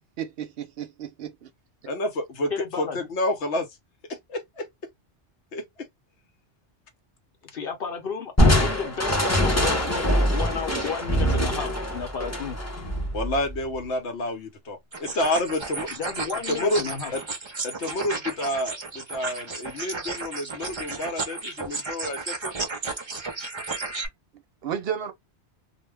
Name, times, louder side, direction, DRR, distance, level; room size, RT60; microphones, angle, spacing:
voice 1, 0.2-1.5 24.6-25.1, right 8 dB, 65° right, 0.7 m, -32 dB
voice 2, 1.8-2.5 2.8-3.7 4.1-4.7 5.5-5.9 13.1-15.9 16.5-17.2 17.6-22.5, left 1 dB, 75° left, 1.1 m, -29 dB
voice 3, 2.5-3.0 7.5-12.6 15.9-17.1, left 6 dB, 55° left, 1.0 m, -32 dB
Crushing, 8.4-13.8, equal, 15° left, 0.7 m, -23 dB
sound 1, 14.9-24.1, right 3 dB, 35° right, 0.5 m, -33 dB
2.4 x 2.1 x 3.3 m
omnidirectional pair, 1.2 m